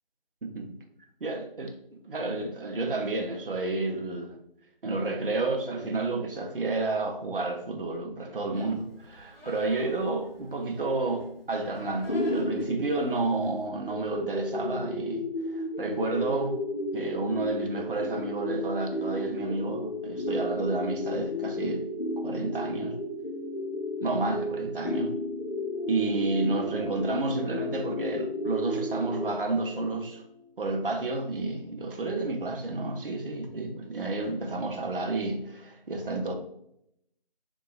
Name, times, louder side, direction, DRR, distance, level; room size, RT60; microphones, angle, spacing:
voice 1, 0.4-0.8 1.2-1.8 2.0-4.4 4.8-16.6 16.9-21.9 22.2-23.0 24.0-25.1 25.9-30.2 30.6-36.3, right 2 dB, 65° right, 0.5 m, -31 dB
Livestock farm animals working animals, 8.5-13.7, equal, 75° left, 0.9 m, -49 dB
sound 1, 12.1-29.3, left 1 dB, 55° left, 0.5 m, -33 dB
sound 2, 25.7-30.5, left 3 dB, 20° left, 1.3 m, -46 dB
2.8 x 2.2 x 2.3 m
figure-of-eight pair, 170°, 30 cm